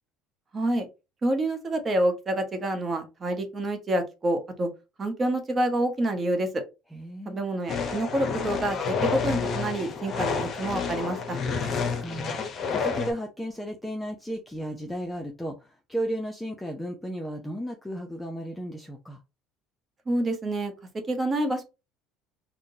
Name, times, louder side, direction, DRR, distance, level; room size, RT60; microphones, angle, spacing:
voice 1, 0.5-0.9 1.2-4.7 5.0-6.5 7.3-11.4 20.1-20.7 21.1-21.6, right 1 dB, 30° right, 5 dB, 0.9 m, -27 dB
voice 2, 6.9-7.4 11.7-19.2, right 1 dB, 10° left, 2 dB, 0.5 m, -34 dB
sound 1, 7.7-13.1, left 5 dB, 45° left, 0.7 m, -29 dB
3.6 x 2.1 x 2.7 m, 0.28 s
hypercardioid pair, 70°, 0 cm